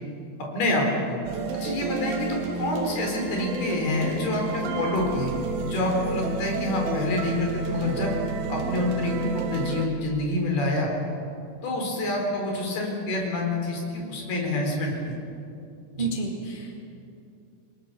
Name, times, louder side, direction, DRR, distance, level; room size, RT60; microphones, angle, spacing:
voice 1, 0.4-1.2 1.5-5.3 5.6-8.2 8.5-10.9 11.6-15.2 15.9-16.1, left 1 dB, 55° left, 0 dB, 6.2 m, -27 dB
Backround Soundtrack, 1.3-9.9, right 3 dB, 80° right, 4.1 m, -31 dB
voice 2, 16.0-16.8, right 3 dB, 60° right, -1 dB, 0.5 m, -30 dB
28.5 x 21.5 x 6.9 m, 2.6 s
omnidirectional pair, 5.4 m